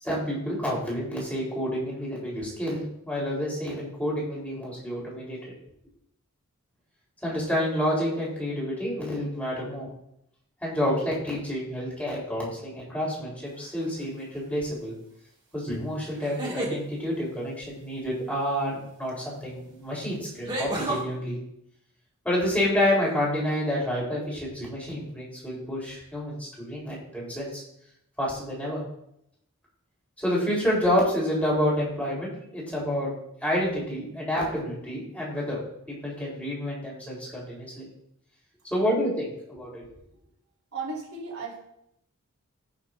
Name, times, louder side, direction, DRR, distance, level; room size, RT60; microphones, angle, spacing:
voice 1, 0.0-5.5 7.2-9.9 10.6-15.0 15.5-21.4 22.2-27.6 28.2-28.8 30.2-33.1 33.4-35.6 35.9-37.9 38.7-39.9, equal, 5° left, -5 dB, 4.0 m, -29 dB
sound 1, 13.6-14.0 16.2-16.8 19.1-19.2 20.5-21.0, right 2 dB, 20° right, 2.2 m, -30 dB
voice 2, 40.7-41.6, right 4 dB, 80° right, -3 dB, 3.5 m, -35 dB
18.0 x 6.7 x 2.7 m, 0.77 s
head